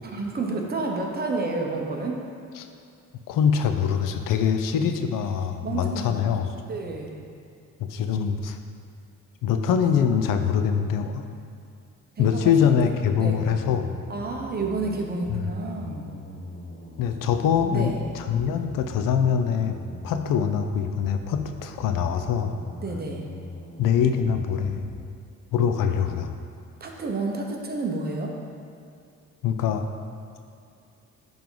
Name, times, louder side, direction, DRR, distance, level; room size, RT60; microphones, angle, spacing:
voice 1, 0.0-2.2 4.9-5.1 5.6-6.3 6.6-7.2 12.2-12.7 13.2-13.4 14.1-16.1 17.7-18.0 22.8-23.3 26.8-28.4, right 3 dB, 30° right, 0 dB, 0.9 m, -30 dB
voice 2, 3.3-6.6 7.8-8.6 9.4-11.3 12.2-13.9 15.3-15.4 17.0-19.8 20.0-22.5 23.8-24.9 25.5-26.3 29.4-29.8, left 7 dB, 75° left, 7 dB, 0.6 m, -23 dB
sound 1, 12.4-25.0, left 1 dB, 35° left, 1.4 m, -42 dB
10.5 x 3.6 x 3.8 m, 2.5 s
cardioid pair, 115°, 33 cm